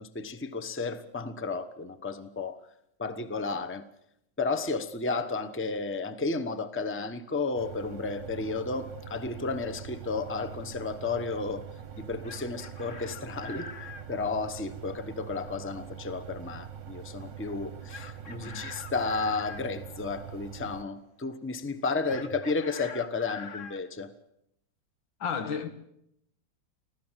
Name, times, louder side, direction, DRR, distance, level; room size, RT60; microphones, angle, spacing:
voice 1, 0.0-2.6 3.0-3.9 4.4-11.6 12.0-24.1, left 3 dB, 10° left, 0.8 m, -33 dB
sound 1, 7.5-20.8, right 9 dB, 45° right, 1.2 m, -44 dB
Chicken rooster, 12.0-14.1 17.9-19.6 22.1-23.8, left 4 dB, 45° left, 1.5 m, -43 dB
voice 2, 25.2-25.7, left 6 dB, 90° left, 2.3 m, -32 dB
25.0 x 16.0 x 7.5 m
omnidirectional pair, 2.0 m